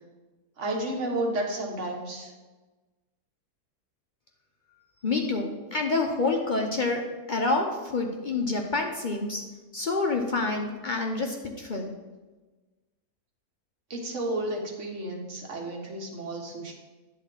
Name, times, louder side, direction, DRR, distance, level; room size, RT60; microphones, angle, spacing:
voice 1, 0.6-2.3 13.9-16.7, right 1 dB, 50° right, 1 dB, 1.7 m, -32 dB
voice 2, 5.0-9.4 9.7-11.9, left 3 dB, 45° left, 1 dB, 0.7 m, -28 dB
10.5 x 4.0 x 6.1 m, 1.2 s
omnidirectional pair, 1.6 m